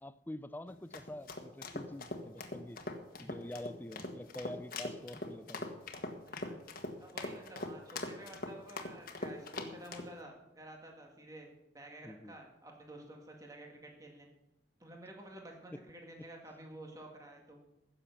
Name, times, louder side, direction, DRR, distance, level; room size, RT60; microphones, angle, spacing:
voice 1, 0.0-2.8 3.2-5.8 12.0-12.3 15.7-15.8, left 1 dB, 10° left, 0.4 m, -46 dB
sound 1, 0.7-10.1, left 2 dB, 50° left, 1.4 m, -42 dB
voice 2, 6.3-6.7 7.0-11.5 11.7-14.3 14.8-17.7, right 1 dB, 20° right, 1.9 m, -51 dB
15.5 x 6.9 x 7.1 m
head